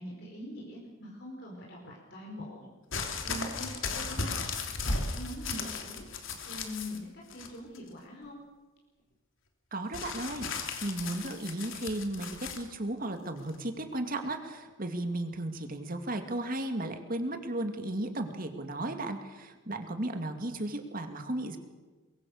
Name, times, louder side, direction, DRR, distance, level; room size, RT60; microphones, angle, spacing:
voice 1, 0.0-2.7 3.2-8.4, left 1 dB, 55° left, -2 dB, 4.9 m, -43 dB
sound 1, 2.9-7.0 7.3-7.9 9.9-12.6 13.5-13.6, left 4 dB, 75° left, 3.1 m, -36 dB
voice 2, 9.7-21.6, right 1 dB, 45° right, 6 dB, 2.4 m, -35 dB
23.0 x 23.0 x 6.6 m, 1.3 s
head